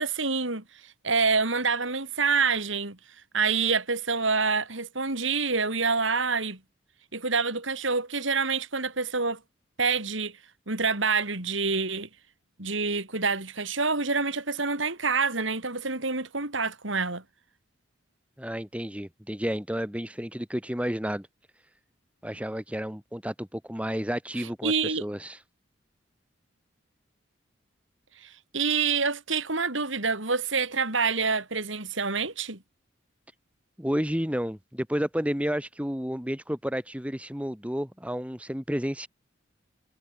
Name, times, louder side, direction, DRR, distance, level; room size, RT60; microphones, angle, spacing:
voice 1, 0.0-3.0 3.3-6.6 7.1-9.4 9.8-10.4 10.7-12.1 12.6-17.2 24.6-25.0 28.2-32.6, right 4 dB, 70° right, 4.4 m, -27 dB
voice 2, 18.4-21.3 22.2-25.4 33.8-39.1, equal, 5° right, 2.0 m, -31 dB
head